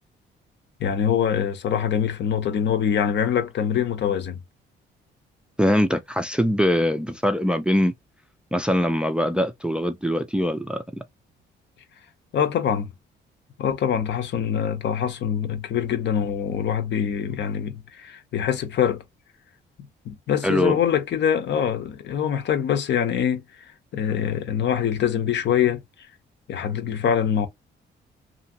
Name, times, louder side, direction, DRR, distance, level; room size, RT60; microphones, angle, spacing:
voice 1, 0.8-4.4 12.3-12.9 13.6-19.0 20.1-23.4 23.9-25.8 26.5-27.5, left 8 dB, 65° left, 0.7 m, -24 dB
voice 2, 5.6-7.9 8.5-10.8 20.4-20.8, equal, 5° right, 0.4 m, -22 dB
2.7 x 2.6 x 2.7 m
cardioid pair, 90°, 20 cm